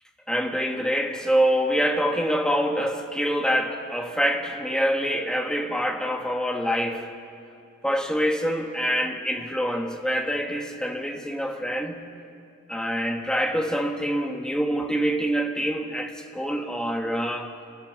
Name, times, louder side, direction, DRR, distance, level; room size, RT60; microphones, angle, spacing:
voice 1, 0.3-7.1 7.8-12.0 12.7-17.5, equal, 5° left, 3 dB, 1.5 m, -25 dB
27.5 x 15.5 x 7.2 m, 2.5 s
head